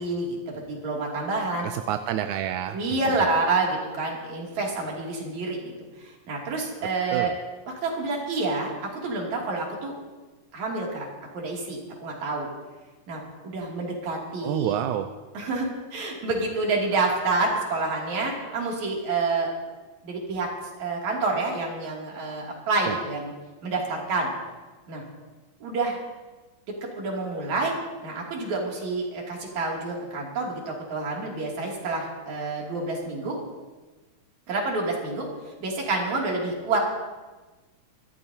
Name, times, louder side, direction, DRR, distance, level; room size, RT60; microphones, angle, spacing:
voice 1, 0.0-1.7 2.7-5.7 6.0-7.3 7.8-9.9 10.5-11.1 11.3-12.5 13.1-14.7 15.3-19.5 20.0-20.5 20.8-23.3 23.6-24.3 24.9-25.0 25.6-26.0 26.9-27.7 28.0-33.4 34.5-36.8, right 3 dB, 60° right, -2 dB, 4.1 m, -28 dB
voice 2, 1.6-3.3 7.1-7.4 14.4-15.1 22.8-23.0, right 11 dB, 80° right, 7 dB, 1.9 m, -29 dB
24.5 x 13.5 x 2.8 m, 1.2 s
omnidirectional pair, 3.7 m